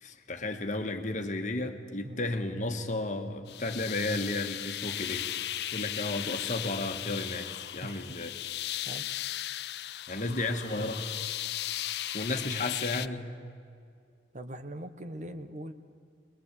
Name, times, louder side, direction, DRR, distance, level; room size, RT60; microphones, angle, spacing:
voice 1, 0.0-5.3 5.7-8.3 10.1-11.1 12.1-13.4, left 2 dB, 45° left, 6 dB, 1.6 m, -33 dB
sound 1, 3.5-13.1, left 13 dB, 65° left, 0.5 m, -36 dB
voice 2, 14.3-15.7, right 1 dB, 40° right, 8 dB, 1.2 m, -41 dB
23.0 x 21.5 x 8.4 m, 2.2 s
head